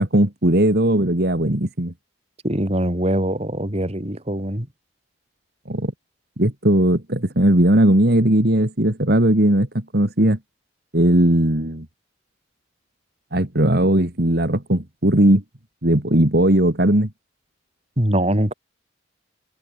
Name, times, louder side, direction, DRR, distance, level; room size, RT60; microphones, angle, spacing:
voice 1, 0.0-1.9 5.7-5.9 6.4-10.4 10.9-11.9 13.3-15.4 15.8-17.1, right 1 dB, 55° right, 2.6 m, -18 dB
voice 2, 2.4-4.7 18.0-18.5, right 1 dB, 35° right, 3.5 m, -22 dB
head